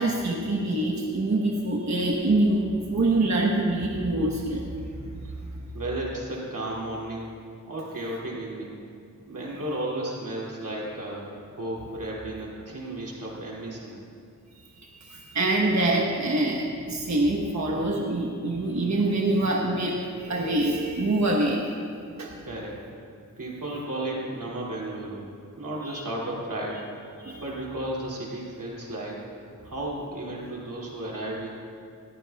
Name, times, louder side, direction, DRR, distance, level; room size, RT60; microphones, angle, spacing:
voice 1, 0.0-5.5 14.6-21.6 22.2-22.3 25.9-26.0 27.2-27.4, right 2 dB, 60° right, -1 dB, 1.1 m, -25 dB
voice 2, 5.7-7.3 7.7-8.8 9.3-11.2 11.6-14.0 22.5-22.8 23.4-25.3 25.5-26.9 27.4-29.2 29.6-31.5, right 1 dB, 80° right, -4 dB, 2.6 m, -33 dB
21.0 x 14.0 x 2.3 m, 2.4 s
wide cardioid pair, 95°, 32 cm